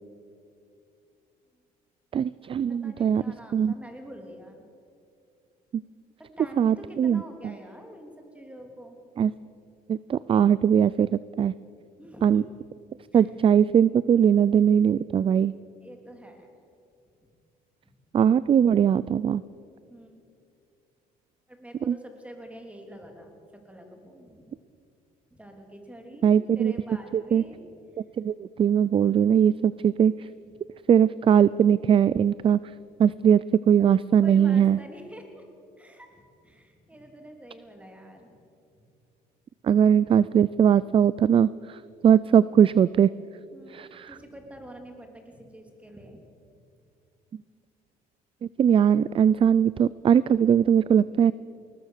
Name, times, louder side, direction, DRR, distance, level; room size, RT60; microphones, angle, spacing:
voice 1, 2.1-3.2 3.5-3.7 6.6-7.2 9.2-9.3 9.9-11.5 12.2-12.4 13.1-15.5 18.1-19.4 21.9-22.0 26.2-26.7 27.1-27.4 28.2-30.1 30.9-32.6 33.0-33.4 33.7-34.8 39.6-41.8 42.0-43.1 43.7-44.1 48.6-51.3, right 8 dB, 30° right, 19 dB, 0.4 m, -20 dB
voice 2, 2.7-4.6 6.2-9.0 12.0-12.5 13.1-13.3 15.8-16.5 19.9-20.2 21.5-24.5 25.3-27.6 27.9-28.0 34.2-35.4 35.8-38.3 38.7-38.8 43.5-43.8 44.1-46.2, equal, 5° right, 3 dB, 3.4 m, -46 dB
20.0 x 20.0 x 6.6 m, 2.5 s
cardioid pair, 110°, 17 cm